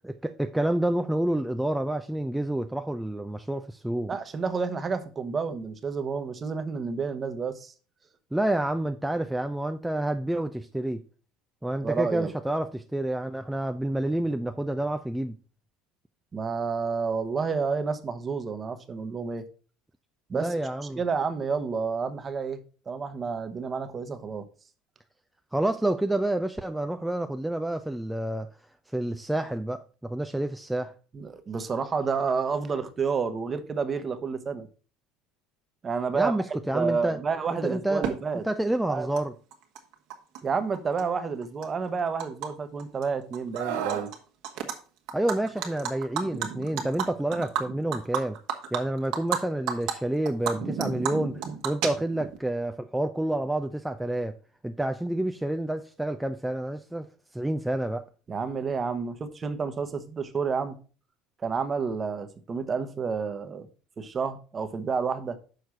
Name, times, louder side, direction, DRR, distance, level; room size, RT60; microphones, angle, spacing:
voice 1, 0.0-4.1 8.3-11.0 11.6-15.4 20.3-21.0 25.5-28.5 28.9-30.9 36.1-37.2 37.5-38.1 38.4-39.3 45.1-48.4 48.7-54.4 54.6-57.1 57.3-58.0, right 1 dB, 5° right, 0.6 m, -28 dB
voice 2, 4.1-7.7 11.8-12.3 16.3-19.4 20.3-20.5 21.0-22.6 22.9-24.5 31.1-34.7 35.8-36.4 36.7-38.4 38.9-39.1 40.4-44.1 58.3-60.8 61.4-63.7 64.0-65.4, right 5 dB, 30° right, 1.1 m, -30 dB
Animal, 38.0-38.1 39.2-39.3 39.5-40.4 40.7-42.5 42.8-43.0 43.3-44.2 44.4-44.7 45.1-49.4 49.7-49.9 50.3-52.4, right 8 dB, 65° right, 1.5 m, -32 dB
Screaming, 43.5-44.1 45.6-45.8, right 9 dB, 80° right, 1.4 m, -32 dB
6.6 x 4.6 x 5.9 m
hypercardioid pair, 80°, 0 cm